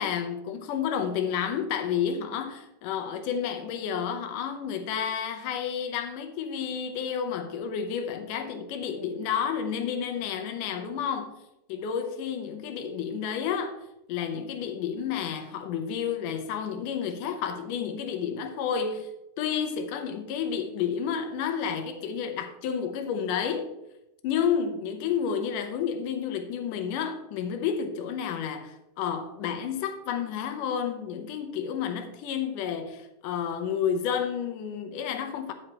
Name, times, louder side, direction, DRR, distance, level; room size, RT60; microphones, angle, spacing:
voice 1, 0.0-11.3 11.7-13.8 14.1-19.1 19.4-23.7 24.2-35.5, left 7 dB, 90° left, 7 dB, 2.4 m, -30 dB
9.4 x 8.6 x 2.9 m, 0.88 s
omnidirectional pair, 3.6 m